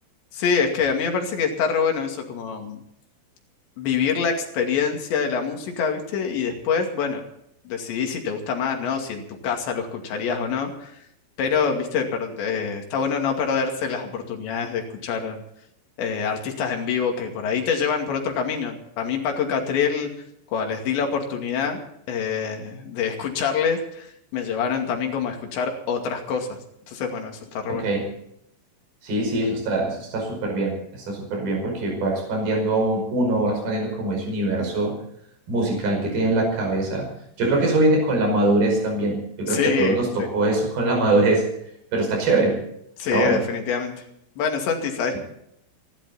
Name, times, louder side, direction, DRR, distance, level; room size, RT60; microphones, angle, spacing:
voice 1, 0.3-2.8 3.8-7.2 7.7-10.9 11.4-15.4 16.0-20.1 20.5-21.8 22.1-26.6 26.9-27.8 39.5-40.3 43.0-43.9 44.4-45.2, left 6 dB, 85° left, 3 dB, 4.7 m, -25 dB
voice 2, 27.7-28.1 29.0-35.0 35.5-37.1 37.4-41.5 41.9-42.6 43.1-43.4, right 2 dB, 60° right, 1 dB, 7.2 m, -22 dB
28.5 x 11.5 x 4.3 m, 0.74 s
omnidirectional pair, 5.0 m